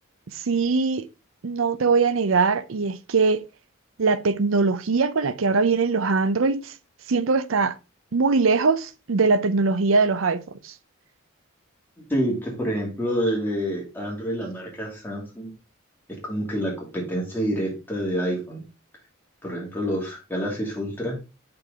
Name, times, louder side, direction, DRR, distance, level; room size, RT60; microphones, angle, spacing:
voice 1, 0.3-1.1 1.4-3.4 4.0-6.7 7.1-7.8 8.1-10.7, right 4 dB, 75° right, 0.6 m, -21 dB
voice 2, 12.0-15.5 16.2-18.6 19.4-21.2, equal, 10° left, 2.6 m, -28 dB
6.7 x 6.0 x 3.5 m
head